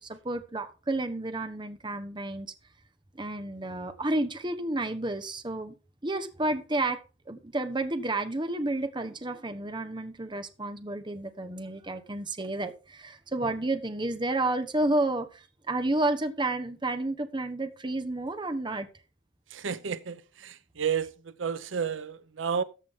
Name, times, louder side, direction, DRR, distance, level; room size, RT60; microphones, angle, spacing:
voice 1, 0.0-2.5 3.1-5.7 6.0-7.0 7.3-18.9, right 2 dB, 25° right, 1.1 m, -31 dB
voice 2, 19.5-22.6, right 7 dB, 85° right, 0.7 m, -32 dB
14.0 x 7.5 x 3.7 m
head